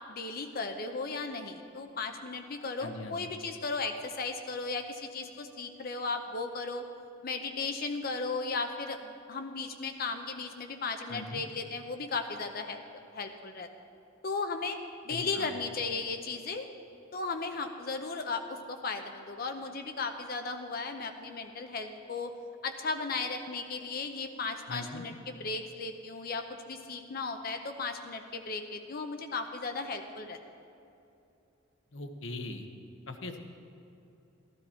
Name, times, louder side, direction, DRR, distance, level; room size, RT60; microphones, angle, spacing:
voice 1, 0.1-6.8 7.2-12.8 13.1-13.7 14.2-14.8 15.0-16.7 17.1-22.3 22.6-30.4, left 4 dB, 45° left, 6 dB, 0.6 m, -36 dB
voice 2, 2.8-3.3 11.1-11.4 15.1-15.6 24.7-25.0 31.9-32.7 33.1-33.4, left 2 dB, 65° left, 6 dB, 1.0 m, -40 dB
14.0 x 12.5 x 4.4 m, 2.8 s
head